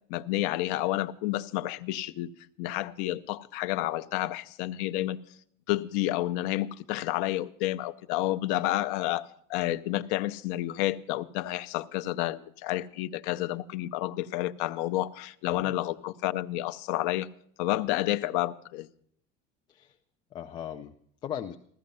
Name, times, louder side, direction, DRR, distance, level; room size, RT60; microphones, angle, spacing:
voice 1, 0.1-2.3 2.6-5.2 5.7-17.3 17.6-18.9, left 15 dB, 65° left, 0.7 m, -30 dB
voice 2, 20.3-21.6, left 10 dB, 25° left, 0.5 m, -38 dB
15.0 x 14.0 x 5.5 m
cardioid pair, 175°, 19 cm